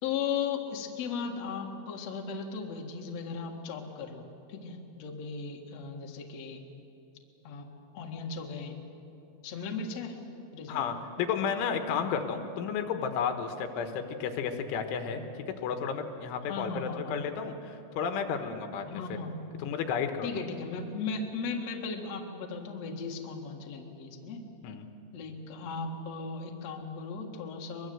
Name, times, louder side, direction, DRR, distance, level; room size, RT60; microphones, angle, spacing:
voice 1, 0.0-6.6 7.4-7.7 7.9-8.8 9.4-10.2 10.5-10.8 16.5-17.2 18.9-19.3 20.2-24.4 25.1-27.9, left 5 dB, 50° left, 1 dB, 2.1 m, -36 dB
voice 2, 10.7-19.0 19.6-20.3 24.6-24.9, left 6 dB, 80° left, 6 dB, 3.6 m, -32 dB
23.0 x 23.0 x 7.9 m, 2.8 s
omnidirectional pair, 5.7 m